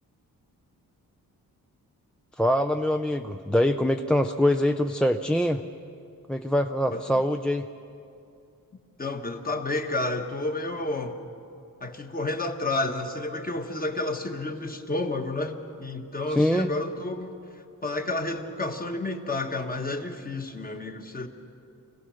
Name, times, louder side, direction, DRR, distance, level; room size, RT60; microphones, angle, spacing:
voice 1, 2.4-5.6 6.3-7.7 16.4-16.7, left 1 dB, 5° left, 5 dB, 0.4 m, -24 dB
voice 2, 9.0-11.2 11.8-17.4 17.8-21.3, left 2 dB, 25° left, 4 dB, 1.5 m, -30 dB
26.0 x 17.0 x 6.4 m, 2.6 s
wide cardioid pair, 125°, 35 cm